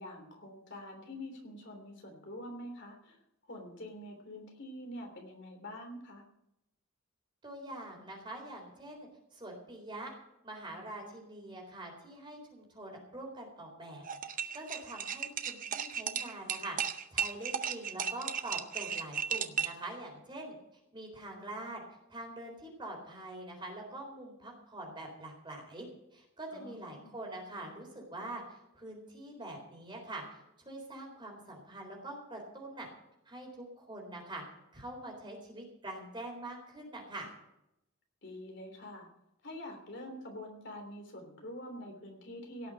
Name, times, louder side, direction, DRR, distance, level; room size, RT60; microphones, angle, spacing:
voice 1, 0.0-3.2 3.5-6.2 26.5-27.2 38.2-39.1 39.4-42.7, left 1 dB, 55° left, 3 dB, 3.2 m, -46 dB
voice 2, 7.4-10.1 10.4-20.5 20.9-21.8 22.1-25.9 26.1-32.9 33.3-34.4 34.7-37.3, right 1 dB, 20° right, 0 dB, 3.9 m, -44 dB
sound 1, 14.0-19.8, right 7 dB, 35° right, 0.7 m, -35 dB
17.5 x 6.5 x 8.9 m, 0.85 s
head